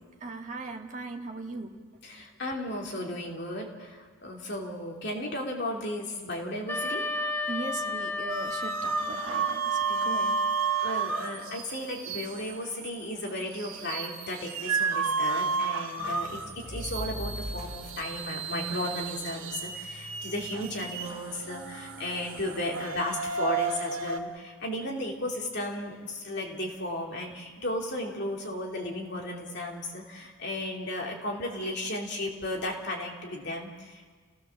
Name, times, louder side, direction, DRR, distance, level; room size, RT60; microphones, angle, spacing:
voice 1, 0.2-1.7 7.5-10.4, right 3 dB, 35° right, 2 dB, 1.6 m, -38 dB
voice 2, 2.0-7.0 10.8-16.4 16.7-34.1, left 1 dB, 55° left, 0 dB, 3.2 m, -35 dB
Wind instrument woodwind instrument, 6.7-11.6, left 2 dB, 10° left, 1.7 m, -34 dB
sound 1, 8.3-24.2, right 5 dB, 75° right, 1.8 m, -32 dB
sound 2, 16.0-22.8, equal, 30° left, 7.3 m, -43 dB
29.5 x 16.5 x 7.3 m, 1.5 s
head